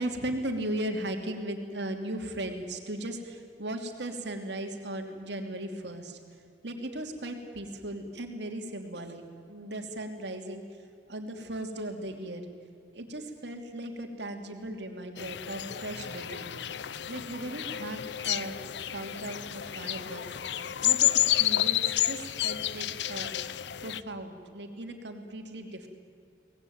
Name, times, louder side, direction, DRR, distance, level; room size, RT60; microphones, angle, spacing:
voice 1, 0.0-6.2 6.6-10.6 11.1-12.5 12.9-16.6 17.1-18.6 18.9-23.3 23.8-25.9, right 1 dB, 70° right, 5 dB, 2.9 m, -37 dB
sound 1, 15.2-24.0, left 13 dB, 70° left, 0.6 m, -30 dB
24.0 x 19.0 x 9.4 m, 2.4 s
head